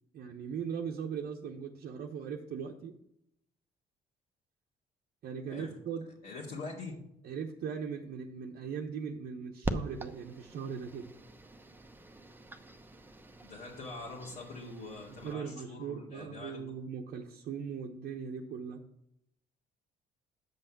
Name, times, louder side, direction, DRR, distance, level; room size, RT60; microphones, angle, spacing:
voice 1, 0.1-3.0 5.2-6.1 7.2-11.1 15.1-18.8, right 6 dB, 60° right, 1 dB, 0.9 m, -39 dB
voice 2, 6.2-7.0 13.4-16.6, left 3 dB, 65° left, -5 dB, 2.1 m, -44 dB
sound 1, 9.6-15.3, right 1 dB, 10° right, 0.8 m, -43 dB
7.6 x 5.5 x 6.0 m, 0.77 s
supercardioid pair, 65°, 17 cm